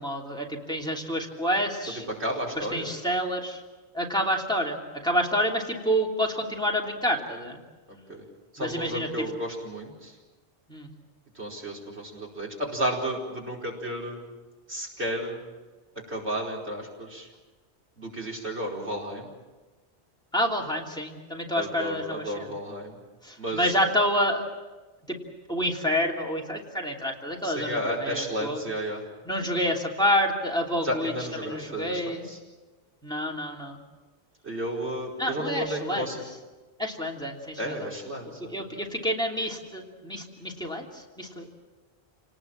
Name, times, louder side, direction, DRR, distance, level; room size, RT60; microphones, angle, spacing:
voice 1, 0.0-2.0 2.6-3.6 3.9-7.6 8.6-9.1 10.7-10.9 20.3-22.5 23.2-24.4 25.1-25.2 25.5-28.6 29.2-31.1 31.4-32.3 33.0-33.8 35.2-36.1 36.8-37.9 38.5-41.6, equal, 5° left, -1 dB, 3.0 m, -28 dB
voice 2, 2.2-2.9 7.9-8.2 8.5-10.2 11.3-14.2 14.7-15.4 16.1-17.3 18.0-19.3 21.6-23.0 23.4-23.8 27.4-29.0 30.8-32.4 34.4-36.2 37.6-38.5, equal, 80° right, -1 dB, 5.2 m, -32 dB
28.0 x 19.0 x 7.4 m, 1.2 s
omnidirectional pair, 1.1 m